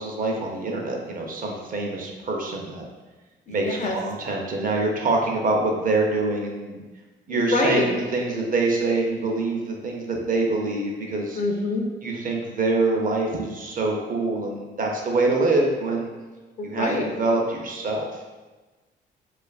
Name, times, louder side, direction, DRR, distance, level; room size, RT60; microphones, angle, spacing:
voice 1, 0.0-2.8 3.5-6.8 7.3-11.4 12.0-16.1 16.6-18.1, right 3 dB, 45° right, 0 dB, 0.5 m, -25 dB
voice 2, 3.5-4.0 7.3-7.9 11.3-11.9 16.6-17.1, left 2 dB, 40° left, 1 dB, 0.4 m, -25 dB
2.7 x 2.4 x 2.3 m, 1.2 s
cardioid pair, 90°, 20 cm